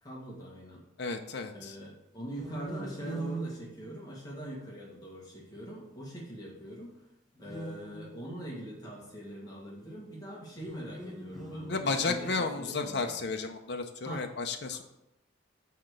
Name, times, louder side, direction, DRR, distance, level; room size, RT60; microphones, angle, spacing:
voice 1, 0.0-0.8 1.5-7.1 7.4-13.2 14.0-14.3 14.7-14.8, right 1 dB, 20° left, -4 dB, 1.5 m, -43 dB
voice 2, 1.0-1.8 11.7-14.8, left 4 dB, 55° left, 4 dB, 0.6 m, -33 dB
sound 1, 2.3-4.6 7.4-8.7 10.5-12.4, right 2 dB, ahead, 1.3 m, -42 dB
5.8 x 4.6 x 6.5 m, 0.87 s
head